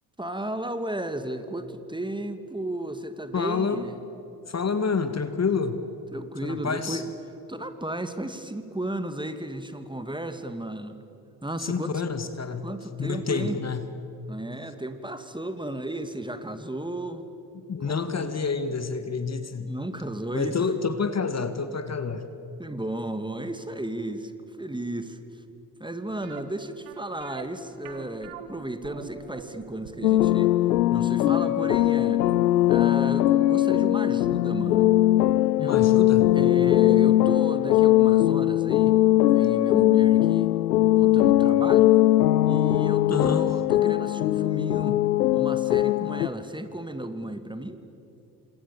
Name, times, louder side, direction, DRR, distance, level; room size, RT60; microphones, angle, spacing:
voice 1, 0.2-4.0 6.1-7.0 7.5-11.0 11.4-11.9 12.6-13.6 14.3-17.2 17.8-18.3 19.6-20.6 22.6-25.4 25.8-30.5 30.9-32.2 32.7-34.9 35.6-36.0 36.3-39.0 39.3-40.5 41.0-41.9 42.4-45.0 45.3-47.8, right 1 dB, 10° right, 9 dB, 2.3 m, -34 dB
voice 2, 3.3-3.9 4.5-5.8 6.4-7.0 11.6-12.7 13.0-13.9 17.7-19.7 20.3-22.3 35.6-36.4 43.1-43.5, left 5 dB, 30° left, 10 dB, 2.0 m, -28 dB
sound 1, 26.2-33.1 33.4-33.5 34.0-34.2 34.4-34.5, right 9 dB, 65° right, 2.0 m, -45 dB
sound 2, 30.0-46.3, left 14 dB, 85° left, 0.5 m, -20 dB
28.0 x 27.0 x 7.3 m, 3.0 s
figure-of-eight pair, 45°, 49 cm